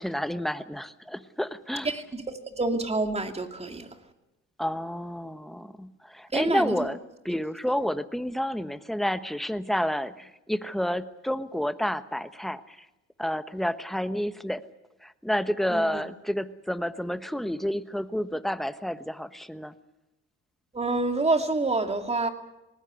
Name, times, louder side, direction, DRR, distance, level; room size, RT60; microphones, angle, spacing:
voice 1, 0.0-1.9 4.6-7.0 7.2-12.8 13.2-14.6 15.0-19.7, equal, ahead, 1.2 m, -30 dB
voice 2, 1.8-3.9 6.3-6.9 15.7-16.0 20.7-22.3, right 3 dB, 20° right, 2.6 m, -27 dB
19.5 x 19.5 x 9.6 m
cardioid pair, 90°, 30 cm